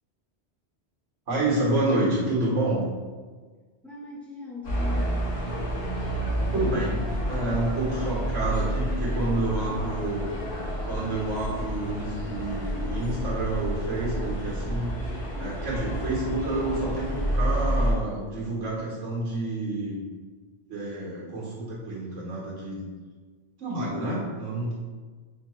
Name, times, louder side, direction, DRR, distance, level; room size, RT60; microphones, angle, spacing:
voice 1, 1.3-2.8 6.5-10.3 10.9-14.9 15.4-20.0 20.7-22.9 23.6-24.7, right 2 dB, 85° right, -6 dB, 1.5 m, -29 dB
voice 2, 3.8-5.8, left 2 dB, ahead, -4 dB, 0.4 m, -40 dB
sound 1, 4.6-17.9, equal, 65° left, 1.3 m, -29 dB
5.0 x 2.3 x 2.9 m, 1.4 s
omnidirectional pair, 1.2 m